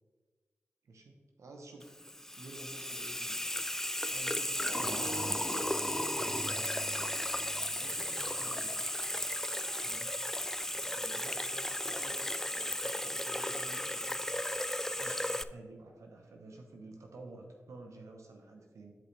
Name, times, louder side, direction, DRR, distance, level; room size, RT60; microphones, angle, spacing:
voice 1, 0.8-2.0 2.4-3.5 4.1-5.1 5.9-7.1 7.8-8.7 9.8-10.2 10.7-14.2 15.0-18.9, right 2 dB, 75° right, 2 dB, 0.9 m, -51 dB
Water tap faucet / Sink (filling or washing), 1.8-15.4, left 1 dB, 10° left, 0.3 m, -35 dB
sound 1, 4.6-9.3, right 2 dB, 35° right, 0.7 m, -45 dB
10.5 x 5.2 x 3.3 m, 1.5 s
cardioid pair, 45°, 5 cm